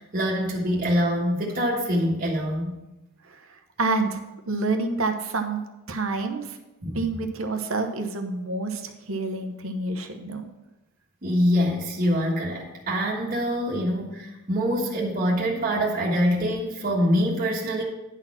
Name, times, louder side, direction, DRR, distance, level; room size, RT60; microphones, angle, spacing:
voice 1, 0.0-2.8 6.8-7.0 11.2-17.8, equal, 40° right, -4 dB, 1.4 m, -25 dB
voice 2, 3.8-4.2 4.5-5.6 5.9-6.6 6.9-10.4, right 3 dB, 65° right, 6 dB, 0.9 m, -28 dB
10.5 x 4.2 x 5.9 m, 0.98 s
head